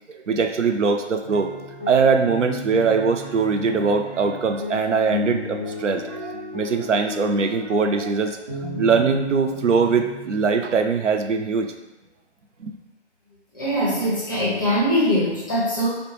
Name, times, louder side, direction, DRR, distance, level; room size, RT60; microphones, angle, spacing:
voice 1, 0.1-1.5 1.9-11.7 12.6-12.7, right 5 dB, 85° right, 6 dB, 0.5 m, -22 dB
sound 1, 1.2-10.6, left 1 dB, 40° right, 1.2 m, -34 dB
voice 2, 13.5-15.9, equal, 20° left, -7 dB, 0.6 m, -22 dB
3.8 x 2.2 x 2.9 m, 1.0 s
figure-of-eight pair, 145°, 36 cm